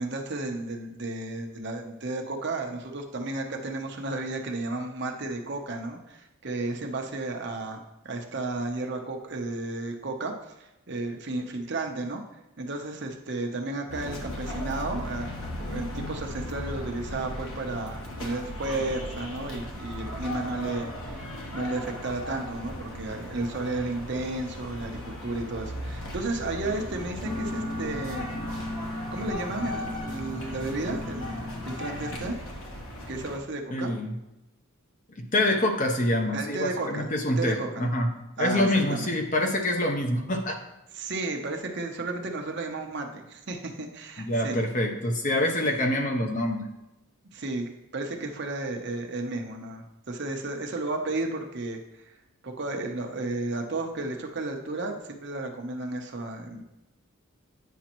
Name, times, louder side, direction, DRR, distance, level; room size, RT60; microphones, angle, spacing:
voice 1, 0.0-12.2 12.6-15.3 15.6-28.3 29.1-32.4 33.1-33.9 36.3-37.1 37.4-37.8 38.4-39.1 40.9-44.6 45.6-45.8 47.3-52.0 52.4-56.6, right 2 dB, 50° right, 2 dB, 0.8 m, -33 dB
sound 1, 13.9-33.4, left 1 dB, 70° left, 1.2 m, -37 dB
sound 2, 27.2-32.3, left 1 dB, 5° left, 1.8 m, -36 dB
voice 2, 33.7-34.1 35.2-38.1 38.4-40.6 44.2-46.6, left 1 dB, 35° left, 3 dB, 0.7 m, -26 dB
9.1 x 5.1 x 3.0 m, 0.97 s
head